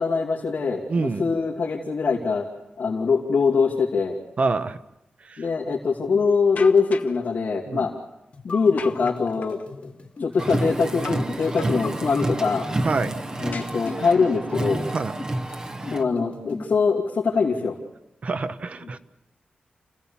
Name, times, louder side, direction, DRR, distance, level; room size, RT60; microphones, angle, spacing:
voice 1, 0.0-2.5 2.8-4.2 5.4-8.0 8.4-9.6 10.2-12.7 13.4-14.8 15.9-17.8, left 4 dB, 75° left, -4 dB, 2.8 m, -23 dB
voice 2, 0.9-1.3 4.4-4.8 5.2-5.5 7.7-7.9 12.8-13.2 14.9-15.2 18.2-19.0, right 4 dB, 45° right, 11 dB, 0.9 m, -26 dB
sound 1, 6.6-7.2 8.8-9.7 11.0-11.3 11.6-12.3 13.5-14.3, left 5 dB, 60° left, 1.1 m, -38 dB
sound 2, 8.3-16.8, left 3 dB, 40° left, 1.8 m, -40 dB
Car, 10.4-16.0, right 2 dB, 25° right, 1.0 m, -29 dB
29.0 x 16.5 x 7.2 m, 0.93 s
wide cardioid pair, 165°, 3 cm